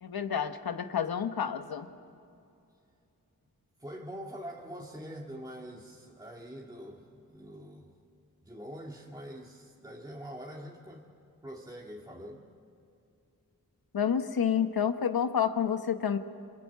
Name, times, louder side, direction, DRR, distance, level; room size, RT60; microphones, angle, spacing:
voice 1, 0.0-1.9 13.9-16.2, left 8 dB, 90° left, 9 dB, 1.3 m, -29 dB
voice 2, 3.8-7.9 8.4-11.0 11.4-12.4, equal, 10° right, -2 dB, 2.1 m, -44 dB
26.5 x 23.5 x 8.4 m, 2.6 s
wide cardioid pair, 80°, 35 cm